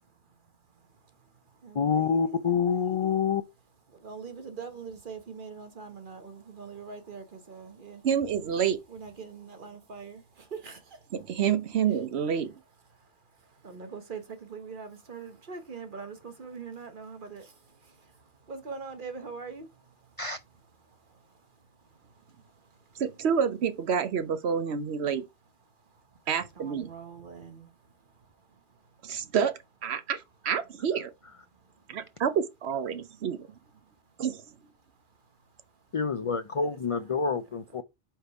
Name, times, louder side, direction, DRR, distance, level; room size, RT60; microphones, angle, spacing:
voice 1, 0.0-3.2 3.9-8.1 8.9-11.3 12.9-20.3 20.8-23.0 25.6-29.3 31.5-32.2 33.8-34.2 34.8-35.9 36.6-37.2 37.8-37.9, right 5 dB, 50° right, 1.1 m, -45 dB
voice 2, 1.7-3.4 20.2-20.4 35.9-37.8, left 6 dB, 55° left, 0.4 m, -27 dB
voice 3, 8.0-8.8 11.1-12.5 22.9-25.2 26.3-26.9 29.0-29.5 29.8-31.1 31.9-33.5 34.2-34.4, right 7 dB, 70° right, 1.0 m, -28 dB
5.1 x 4.4 x 4.6 m
omnidirectional pair, 1.1 m